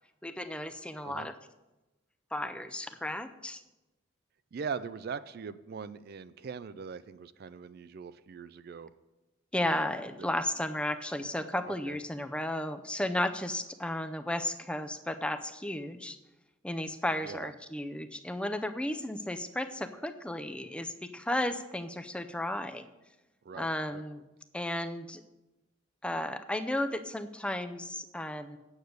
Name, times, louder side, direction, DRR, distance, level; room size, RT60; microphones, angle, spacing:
voice 1, 0.2-1.3 2.3-3.6 9.5-16.2 16.6-22.9 23.5-24.2 24.5-25.2 26.0-28.6, left 1 dB, 5° left, 8 dB, 0.5 m, -34 dB
voice 2, 4.5-8.9 11.7-12.0 17.2-17.5 23.4-24.0, right 6 dB, 55° right, 14 dB, 0.4 m, -41 dB
8.8 x 6.6 x 7.9 m, 1.0 s
head